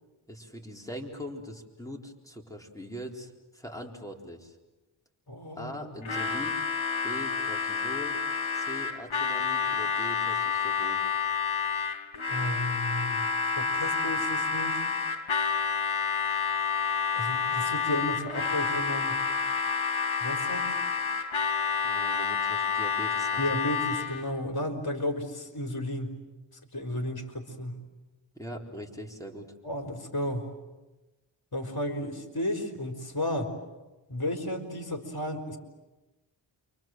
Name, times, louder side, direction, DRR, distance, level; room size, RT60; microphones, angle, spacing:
voice 1, 0.3-4.6 5.5-6.6 7.0-8.2 8.5-11.0 13.7-13.9 21.8-23.4 28.4-29.5, equal, 5° left, 1 dB, 4.3 m, -41 dB
voice 2, 5.3-5.9 12.3-13.2 13.5-14.8 17.1-19.2 20.2-20.7 23.4-26.2 26.7-27.8 29.6-30.5 31.5-33.5 34.1-35.6, left 1 dB, 50° left, 4 dB, 4.3 m, -33 dB
Harmonica, 6.0-24.3, left 5 dB, 75° left, 2.1 m, -29 dB
29.5 x 24.5 x 7.8 m, 1.1 s
cardioid pair, 55°, 47 cm